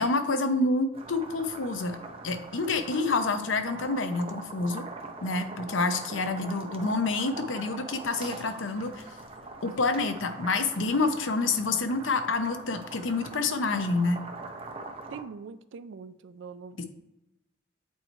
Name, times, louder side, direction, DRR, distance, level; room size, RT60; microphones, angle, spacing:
voice 1, 0.0-2.0 2.2-4.8 5.2-9.0 9.6-14.2 16.8-16.9, left 3 dB, 90° left, 8 dB, 0.7 m, -28 dB
sound 1, 0.9-15.2, right 3 dB, 30° right, 0.7 m, -42 dB
voice 2, 15.1-16.8, right 5 dB, 75° right, 14 dB, 0.4 m, -43 dB
8.4 x 3.1 x 4.3 m, 0.93 s
head